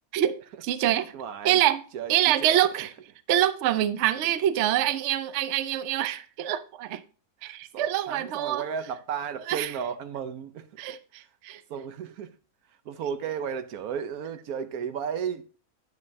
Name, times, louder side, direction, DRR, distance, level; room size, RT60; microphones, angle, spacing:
voice 1, 0.1-1.1 1.4-1.8 2.1-2.9 3.3-7.0 7.4-8.7 9.5-9.7 10.8-11.6, right 12 dB, 65° right, 0.8 m, -25 dB
voice 2, 1.1-1.6 1.9-2.1 2.4-2.9 4.2-4.3 7.4-10.9 11.7-12.3 12.8-15.5, right 7 dB, 80° right, 1.2 m, -34 dB
9.4 x 7.4 x 2.7 m
omnidirectional pair, 1.5 m